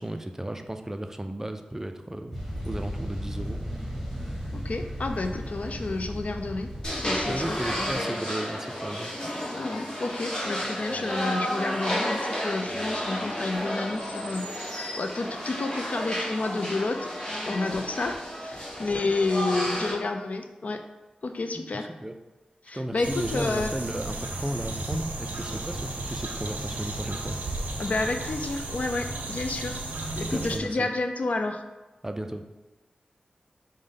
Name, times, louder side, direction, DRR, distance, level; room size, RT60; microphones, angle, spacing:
voice 1, 0.0-2.4 2.6-3.6 7.3-9.1 21.7-22.2 22.7-27.4 30.3-30.9 32.0-32.4, right 1 dB, 15° right, 6 dB, 0.3 m, -34 dB
sound 1, 2.3-8.0, equal, ahead, 1.3 m, -35 dB
voice 2, 4.5-6.7 7.0-8.1 9.5-17.1 17.5-20.8 21.2-21.9 22.6-23.7 27.8-29.8 30.2-31.6, left 3 dB, 60° left, 6 dB, 0.4 m, -30 dB
sound 2, 6.8-19.9, equal, 35° left, 1.3 m, -32 dB
sound 3, 23.0-30.6, right 2 dB, 80° right, 0.5 m, -34 dB
5.1 x 2.1 x 3.7 m, 1.1 s
cardioid pair, 50°, 3 cm